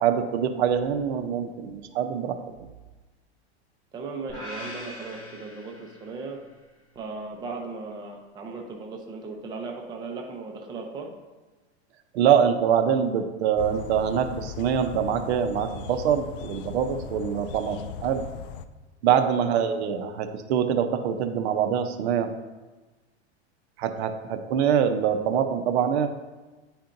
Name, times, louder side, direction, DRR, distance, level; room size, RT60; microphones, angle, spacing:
voice 1, 0.0-2.4 12.1-18.2 19.0-22.3 23.8-26.1, right 8 dB, 70° right, 8 dB, 0.7 m, -24 dB
voice 2, 3.9-6.4 7.0-11.1 19.4-19.6, right 4 dB, 10° right, 1 dB, 0.5 m, -37 dB
sound 1, 4.3-6.5, left 1 dB, 15° left, 1.9 m, -41 dB
sound 2, 13.6-18.7, left 8 dB, 55° left, 0.4 m, -38 dB
9.4 x 4.4 x 2.6 m, 1.2 s
supercardioid pair, 150°, 34 cm